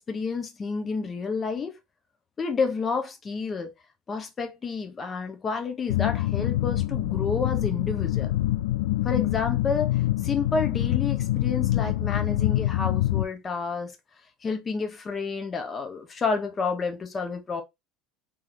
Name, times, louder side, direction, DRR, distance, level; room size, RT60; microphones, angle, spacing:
voice 1, 0.0-1.8 2.4-3.7 4.1-8.3 9.0-13.9 14.4-17.6, left 4 dB, 30° left, 1.1 m, -30 dB
sound 1, 5.9-13.3, left 15 dB, 75° left, 0.4 m, -25 dB
3.7 x 3.4 x 2.9 m
hypercardioid pair, 75°, 0 cm